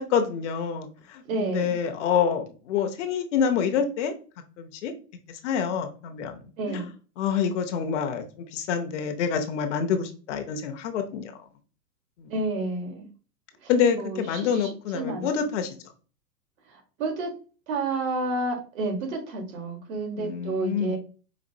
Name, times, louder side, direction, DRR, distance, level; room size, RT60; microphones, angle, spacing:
voice 1, 0.1-4.1 4.6-4.9 5.4-6.8 7.2-8.3 8.5-11.3 12.2-12.3 13.7-15.7 20.2-21.0, left 7 dB, 50° left, 6 dB, 0.7 m, -27 dB
voice 2, 1.3-1.7 6.6-6.9 12.3-13.1 13.9-15.3 17.0-17.3 17.7-21.0, right 2 dB, 55° right, 3 dB, 1.5 m, -30 dB
5.1 x 2.5 x 2.7 m, 0.36 s
hypercardioid pair, 130°, 48 cm